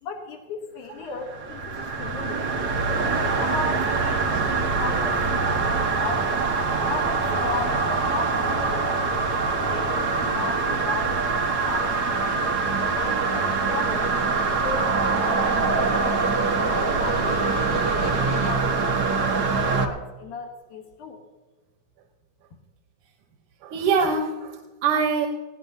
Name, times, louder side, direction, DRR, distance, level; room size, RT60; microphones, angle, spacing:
voice 1, 0.0-2.6 3.0-6.3 6.8-9.0 9.4-12.2 12.8-14.2 14.5-16.3 16.7-18.9 19.2-19.4 19.7-21.2, left 4 dB, 80° left, 3 dB, 2.8 m, -36 dB
sound 1, 1.2-19.9, right 4 dB, 50° right, 1.3 m, -24 dB
Snare drum, 11.5-18.8, equal, 50° left, 0.4 m, -40 dB
voice 2, 23.6-25.3, right 5 dB, 90° right, 3 dB, 2.6 m, -24 dB
20.0 x 17.0 x 2.8 m, 1.3 s
omnidirectional pair, 3.5 m